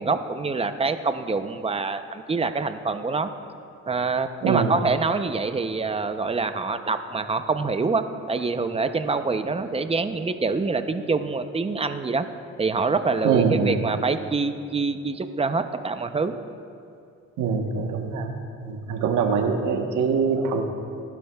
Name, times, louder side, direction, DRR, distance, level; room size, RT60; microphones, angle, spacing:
voice 1, 0.0-3.3 3.9-12.3 12.6-16.3, right 4 dB, 20° right, 9 dB, 0.6 m, -25 dB
voice 2, 13.2-13.8 17.4-18.3 18.6-20.6, right 5 dB, 85° right, 3 dB, 1.2 m, -23 dB
19.0 x 12.0 x 2.3 m, 2.5 s
cardioid pair, 90°, 30 cm